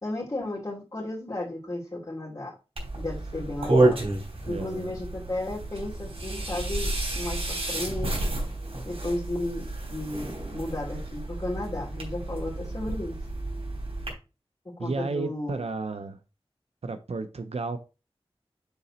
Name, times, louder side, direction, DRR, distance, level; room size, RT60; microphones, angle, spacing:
voice 1, 0.0-2.5 2.9-4.0 4.5-8.2 8.8-13.2 14.8-15.6, left 1 dB, 40° left, 2.6 m, -34 dB
sound 1, 2.8-14.1, right 2 dB, 70° right, 3.4 m, -30 dB
voice 2, 4.5-5.0 14.8-16.2 16.8-17.8, right 3 dB, 90° right, 0.6 m, -32 dB
6.9 x 4.0 x 4.2 m
wide cardioid pair, 50°, 10 cm